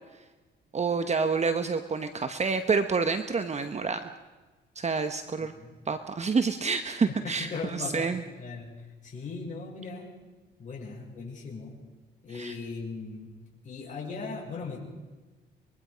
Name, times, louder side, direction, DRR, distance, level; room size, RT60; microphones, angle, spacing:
voice 1, 0.7-4.1 4.7-5.5 5.9-8.2 12.3-12.6, right 5 dB, 35° right, 9 dB, 1.1 m, -28 dB
voice 2, 7.2-8.1 8.4-8.7 9.0-10.1 10.6-11.7 12.2-13.3 13.6-14.8, left 4 dB, 40° left, -4 dB, 6.4 m, -38 dB
24.5 x 22.0 x 5.2 m, 1.2 s
cardioid pair, 90°, 20 cm